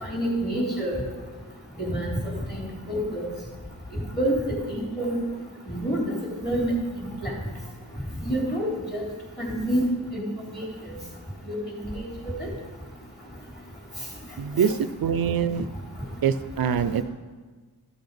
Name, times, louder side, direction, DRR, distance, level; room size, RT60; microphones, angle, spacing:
voice 1, 0.0-1.0 1.9-2.1 2.5-3.3 3.9-4.3 4.7-5.2 5.7-6.1 6.4-6.7 7.0-7.3 8.2-9.0 9.4-9.8 10.1-10.7 11.5-11.6 11.9-12.1 12.4-12.5, right 1 dB, 25° left, -3 dB, 3.4 m, -28 dB
voice 2, 14.4-15.6 16.2-17.0, right 7 dB, 65° right, 13 dB, 0.6 m, -24 dB
14.0 x 6.0 x 5.2 m, 1.4 s
wide cardioid pair, 105°, 38 cm